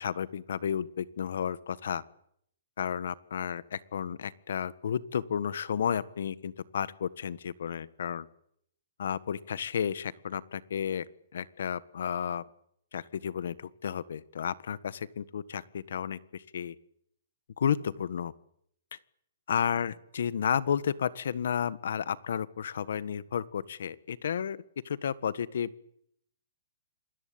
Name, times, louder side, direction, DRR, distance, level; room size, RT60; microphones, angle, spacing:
voice 1, 0.0-2.0 2.8-8.3 9.0-11.0 11.3-12.4 12.9-16.7 17.6-18.3 19.5-24.6 24.8-25.9, left 8 dB, 65° left, 17 dB, 1.6 m, -32 dB
27.0 x 21.5 x 8.8 m, 0.70 s
hypercardioid pair, 170°, 0 cm